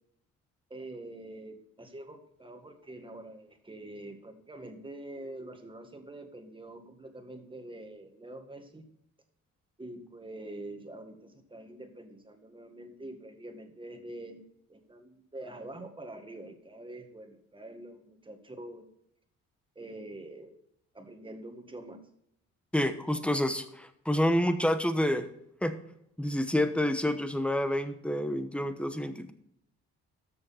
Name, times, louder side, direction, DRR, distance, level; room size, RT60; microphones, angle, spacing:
voice 1, 0.7-8.9 9.8-14.4 14.7-18.9 19.8-20.6 20.9-22.0, right 1 dB, 15° right, 5 dB, 1.9 m, -45 dB
voice 2, 22.7-25.3 25.6-25.7 26.2-29.3, left 1 dB, 5° left, 9 dB, 1.1 m, -28 dB
13.5 x 6.6 x 4.3 m, 0.73 s
cardioid pair, 90°, 30 cm